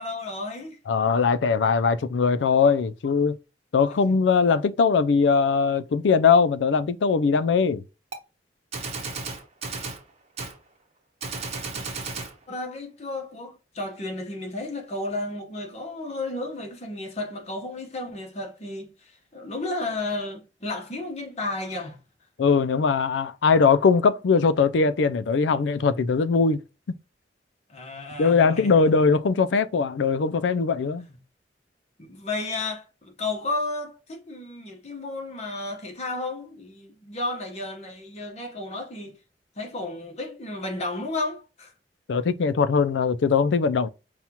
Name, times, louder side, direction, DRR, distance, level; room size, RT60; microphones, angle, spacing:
voice 1, 0.0-0.8 4.1-4.2 11.7-12.1 12.5-22.0 27.7-28.7 30.8-31.2 32.0-39.2 39.6-41.7, left 2 dB, 40° left, 1.0 m, -33 dB
voice 2, 0.9-3.4 3.7-7.8 22.4-26.6 28.2-31.1 42.1-43.9, left 5 dB, 85° left, 0.4 m, -21 dB
Gunshot gunfire, 8.1-8.2 8.7-10.0 10.4-10.6 11.2-12.3, right 4 dB, 40° right, 0.8 m, -33 dB
5.6 x 2.3 x 2.9 m
head